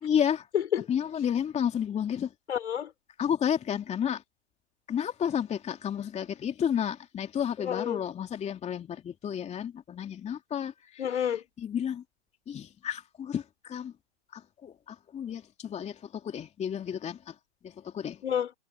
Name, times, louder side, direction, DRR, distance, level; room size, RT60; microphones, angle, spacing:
voice 1, 0.0-0.5 0.9-2.3 3.2-4.2 4.9-11.0 11.6-12.0 12.5-13.9 14.3-17.3 17.6-18.2, left 8 dB, 20° left, 2.8 m, -31 dB
voice 2, 0.5-0.9 2.5-2.9 7.6-8.1 11.0-11.4 18.2-18.5, left 9 dB, 70° left, 5.3 m, -29 dB
hypercardioid pair, 115°, 36 cm